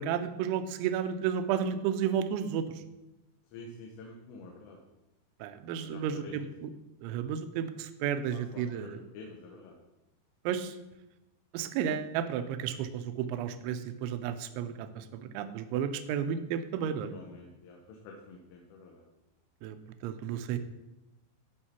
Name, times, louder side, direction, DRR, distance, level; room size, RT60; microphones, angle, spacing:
voice 1, 0.0-2.6 5.4-6.7 7.0-9.0 10.5-10.7 11.5-17.1 19.6-19.8 20.0-20.6, right 8 dB, 80° right, 9 dB, 2.9 m, -32 dB
voice 2, 3.5-4.8 5.8-6.5 8.3-9.8 17.0-19.1, left 3 dB, 85° left, 0 dB, 3.7 m, -48 dB
14.5 x 5.3 x 4.4 m, 0.96 s
omnidirectional pair, 5.6 m